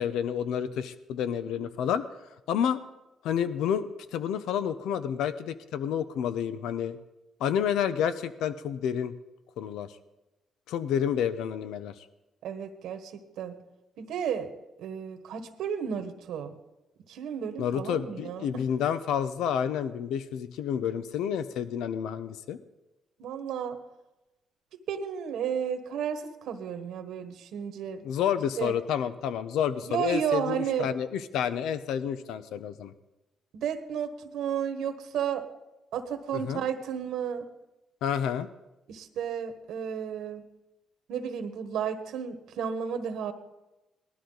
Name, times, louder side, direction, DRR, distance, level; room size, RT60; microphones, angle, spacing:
voice 1, 0.0-2.0 2.5-2.8 3.2-7.0 7.4-9.1 9.6-9.9 10.7-12.1 17.6-22.6 28.0-32.9 36.4-36.6 38.0-38.5, left 8 dB, 85° left, 13 dB, 0.7 m, -29 dB
voice 2, 12.4-13.5 14.0-14.5 14.8-16.5 17.1-18.6 23.2-23.8 24.9-28.0 28.6-28.7 29.8-30.9 33.5-35.4 35.9-37.4 38.9-40.4 41.1-43.3, right 8 dB, 80° right, 8 dB, 1.3 m, -32 dB
19.0 x 13.0 x 3.9 m, 1.0 s
cardioid pair, 90°, 0 cm